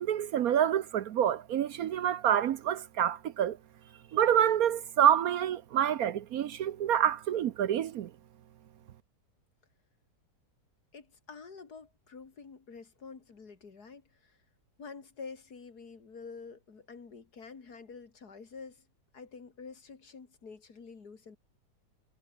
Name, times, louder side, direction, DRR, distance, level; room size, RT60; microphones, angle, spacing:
voice 1, 0.0-3.6 4.1-8.1, right 10 dB, 65° right, 1.1 m, -27 dB
voice 2, 10.9-14.4 14.8-18.9 19.1-21.4, left 5 dB, 65° left, 3.0 m, -48 dB
omnidirectional pair, 1.8 m